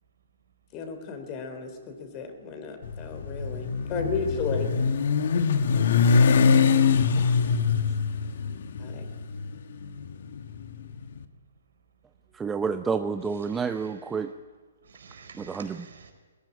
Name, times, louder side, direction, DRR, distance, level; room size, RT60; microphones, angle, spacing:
voice 1, 0.7-4.7 8.8-9.1, left 4 dB, 30° left, 3.3 m, -33 dB
Motorcycle, 2.8-11.0, left 5 dB, 65° left, 1.4 m, -23 dB
voice 2, 12.3-14.3 15.4-15.9, right 5 dB, 10° right, 0.7 m, -29 dB
voice 3, 13.5-13.9 14.8-16.1, right 5 dB, 75° right, 4.6 m, -49 dB
19.0 x 15.5 x 9.9 m
hypercardioid pair, 140°, 0 cm